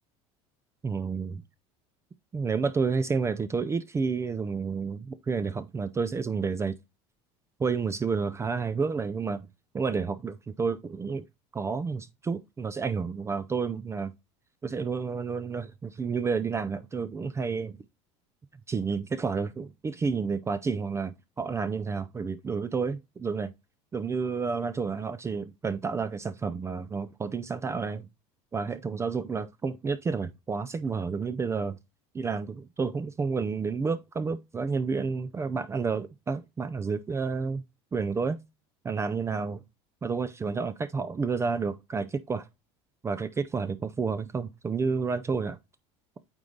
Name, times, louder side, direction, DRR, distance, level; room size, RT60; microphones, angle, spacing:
voice 1, 0.8-1.4 2.3-6.8 7.6-9.5 9.7-11.2 11.5-14.1 14.6-17.8 18.7-23.5 23.9-28.0 28.5-31.8 32.1-37.6 37.9-38.4 38.8-39.6 40.0-42.5 43.0-45.6, right 5 dB, 20° right, 0.5 m, -30 dB
8.9 x 3.2 x 3.8 m
supercardioid pair, 120°, 14 cm